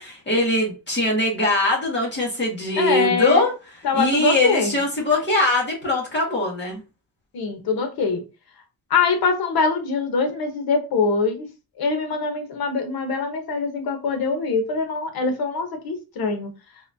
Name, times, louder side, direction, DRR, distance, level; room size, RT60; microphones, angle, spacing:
voice 1, 0.0-3.5 3.9-6.8, left 2 dB, 30° left, 1.6 m, -22 dB
voice 2, 2.8-3.4 3.8-4.8 7.3-8.2 8.9-11.5 11.8-16.5, left 4 dB, 85° left, 1.0 m, -23 dB
4.1 x 3.0 x 2.6 m
wide cardioid pair, 150°, 36 cm